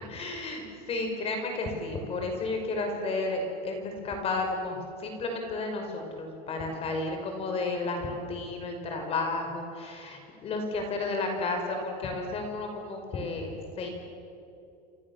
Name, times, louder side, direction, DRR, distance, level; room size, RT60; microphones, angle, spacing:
voice 1, 0.1-13.9, left 3 dB, 30° left, 4 dB, 5.5 m, -32 dB
28.5 x 28.5 x 7.4 m, 2.7 s
supercardioid pair, 150°, 20 cm